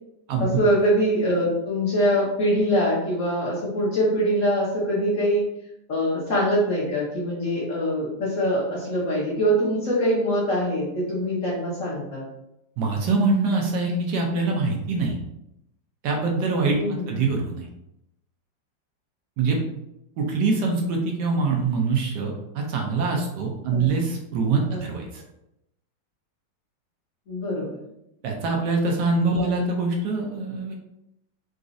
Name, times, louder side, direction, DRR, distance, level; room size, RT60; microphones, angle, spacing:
voice 1, 0.4-5.4 5.9-12.2 16.7-17.1 23.7-23.9 24.7-24.8 27.3-27.8 29.4-29.5, equal, 55° left, -6 dB, 1.0 m, -23 dB
voice 2, 12.8-15.2 16.0-16.8 17.1-17.7 19.4-19.6 20.2-25.2 28.2-30.7, right 3 dB, 70° right, 1 dB, 1.1 m, -24 dB
3.9 x 2.4 x 2.5 m, 0.83 s
omnidirectional pair, 2.0 m